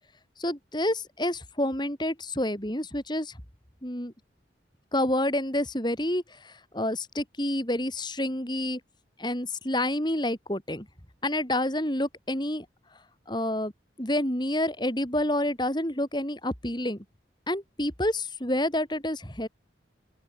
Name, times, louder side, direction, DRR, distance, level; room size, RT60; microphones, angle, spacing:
voice 1, 0.4-3.3 3.8-4.1 4.9-8.8 9.2-10.9 11.2-12.7 13.3-13.7 14.0-17.0 17.5-19.5, left 1 dB, 25° left, 4.6 m, -28 dB
open air
head